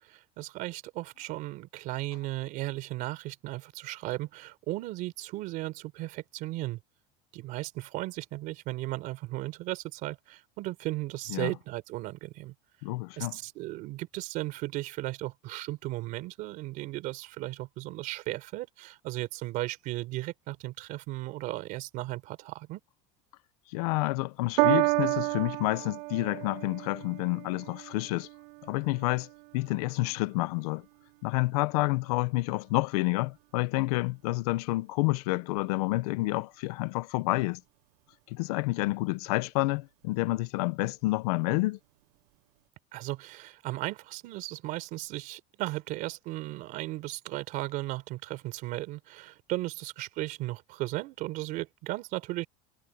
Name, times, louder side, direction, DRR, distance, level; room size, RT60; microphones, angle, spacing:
voice 1, 0.1-6.8 7.3-12.5 13.2-22.8 42.9-52.5, right 18 dB, 45° right, 4.3 m, -36 dB
voice 2, 12.8-13.4 23.7-28.3 28.6-29.3 29.5-30.8 31.2-37.6 38.3-41.8, left 21 dB, 80° left, 0.9 m, -29 dB
Piano, 24.6-31.2 32.0-32.1, right 29 dB, 85° right, 0.9 m, -32 dB
cardioid pair, 180°, 19 cm